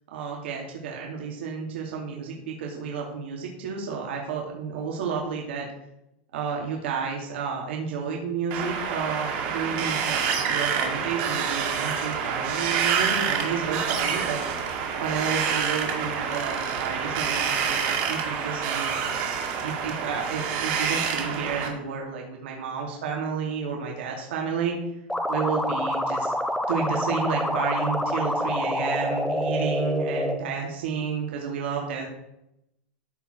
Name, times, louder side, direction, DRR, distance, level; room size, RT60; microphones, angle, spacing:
voice 1, 0.1-5.7 6.3-14.4 15.0-19.0 19.6-24.8 25.3-26.3 26.7-32.1, right 6 dB, 75° right, -1 dB, 2.4 m, -31 dB
Wind, 8.5-21.7, right 7 dB, 40° right, 2.3 m, -27 dB
sound 1, 25.1-30.3, left 1 dB, ahead, 0.6 m, -27 dB
13.5 x 5.0 x 6.2 m, 0.85 s
supercardioid pair, 175°, 6 cm